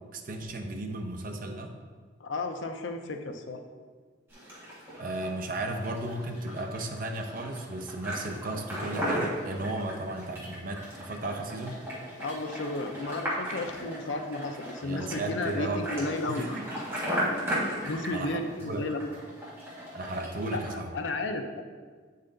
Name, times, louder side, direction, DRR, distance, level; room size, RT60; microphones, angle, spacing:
voice 1, 0.1-1.7 5.0-11.8 14.8-15.9 16.3-16.7 17.2-18.9 19.9-20.9, right 2 dB, 45° right, 4 dB, 0.6 m, -35 dB
voice 2, 2.2-3.6 12.2-16.5 17.8-19.1 20.5-21.6, left 2 dB, 75° left, 5 dB, 0.6 m, -33 dB
sound 1, 4.3-20.7, equal, 15° right, 1.6 m, -36 dB
8.3 x 4.1 x 3.8 m, 1.5 s
head